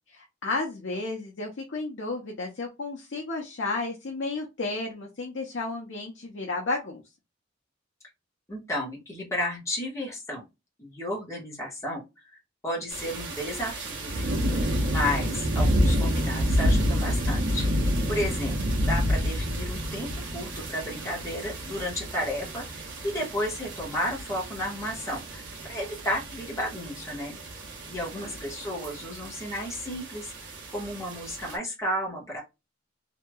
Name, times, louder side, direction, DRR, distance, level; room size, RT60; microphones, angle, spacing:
voice 1, 0.1-7.0 28.1-28.3, left 3 dB, 70° left, 0 dB, 0.7 m, -32 dB
voice 2, 8.5-10.4 10.8-12.0 12.6-17.7 18.1-18.6 18.9-27.4 27.9-30.3 30.7-32.4, left 1 dB, 15° left, -4 dB, 1.2 m, -33 dB
sound 1, 12.9-31.6, equal, 65° right, 1.0 m, -29 dB
2.9 x 2.7 x 2.2 m, 0.23 s
head